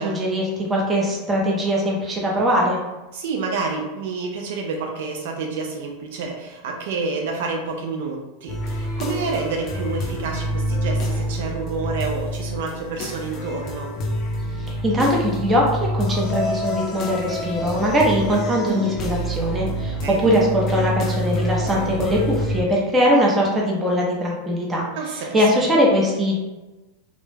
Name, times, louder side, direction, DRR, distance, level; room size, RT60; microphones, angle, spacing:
voice 1, 0.0-2.8 14.6-24.9 25.3-26.4, equal, 15° right, -3 dB, 0.6 m, -21 dB
voice 2, 3.1-13.9 20.0-20.3 25.0-25.5, right 4 dB, 70° right, 1 dB, 0.4 m, -29 dB
sound 1, 8.5-22.6, equal, 35° left, 0.4 m, -27 dB
2.2 x 2.0 x 3.2 m, 1.1 s
supercardioid pair, 130°, 0 cm